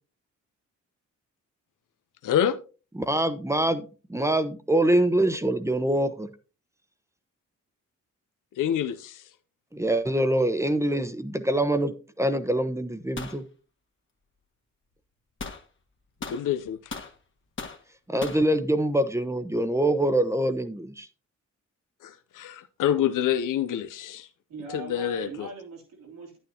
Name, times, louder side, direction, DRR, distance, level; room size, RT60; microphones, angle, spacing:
voice 1, 2.2-2.6 8.6-9.2 16.3-16.9 22.0-24.3 24.7-25.5, left 10 dB, 75° left, 11 dB, 0.7 m, -27 dB
voice 2, 3.0-6.3 9.7-13.4 18.1-21.1, right 1 dB, 10° right, 11 dB, 1.0 m, -25 dB
sound 1, 13.2-13.4 15.4-15.6 16.2-17.1 17.6-17.8 18.2-18.5, left 4 dB, 40° left, 1.6 m, -37 dB
voice 3, 24.5-26.4, right 4 dB, 90° right, -2 dB, 3.2 m, -41 dB
9.7 x 9.4 x 2.8 m, 0.34 s
cardioid pair, 70°, 32 cm